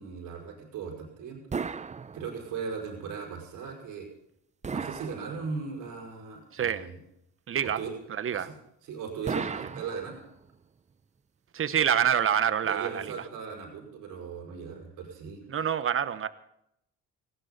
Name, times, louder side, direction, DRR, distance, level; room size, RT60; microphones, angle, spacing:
voice 1, 0.0-1.4 2.1-4.1 4.7-7.0 7.6-7.9 8.3-8.5 8.8-10.2 12.6-15.4, right 5 dB, 80° right, 0 dB, 5.2 m, -38 dB
sound 1, 1.5-2.7 4.6-5.9 9.3-10.5, right 5 dB, 25° right, 0.6 m, -36 dB
voice 2, 6.5-6.9 7.5-7.8 8.1-8.5 9.4-9.6 11.5-13.1 15.5-16.3, right 8 dB, 45° right, 13 dB, 1.1 m, -27 dB
18.5 x 16.5 x 4.1 m, 0.78 s
cardioid pair, 90°, 30 cm